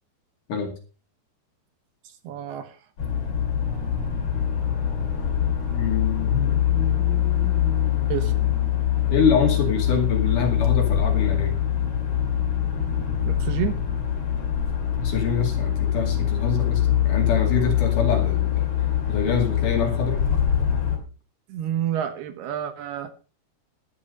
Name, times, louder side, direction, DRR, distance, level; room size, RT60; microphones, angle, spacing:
voice 1, 2.2-2.8 3.7-4.0 8.1-8.3 13.2-13.8 21.5-23.1, right 10 dB, 70° right, 10 dB, 2.8 m, -29 dB
sound 1, 3.0-21.0, left 10 dB, 35° left, 3.2 m, -23 dB
voice 2, 5.7-8.4 9.1-11.6 15.0-18.7 19.1-20.3, left 5 dB, 50° left, 4 dB, 3.5 m, -26 dB
12.0 x 10.5 x 5.2 m, 0.35 s
omnidirectional pair, 5.1 m